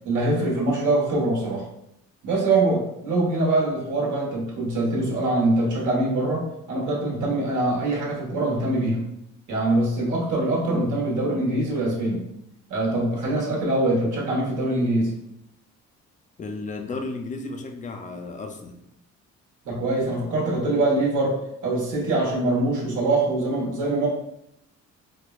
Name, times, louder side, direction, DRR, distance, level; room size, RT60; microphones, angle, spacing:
voice 1, 0.0-1.7 2.2-9.0 9.5-12.2 12.7-15.1 19.6-24.1, right 2 dB, 80° right, -4 dB, 1.2 m, -23 dB
voice 2, 16.4-18.8, left 3 dB, 25° left, 5 dB, 0.4 m, -34 dB
4.3 x 2.1 x 2.3 m, 0.79 s
cardioid pair, 90°, 30 cm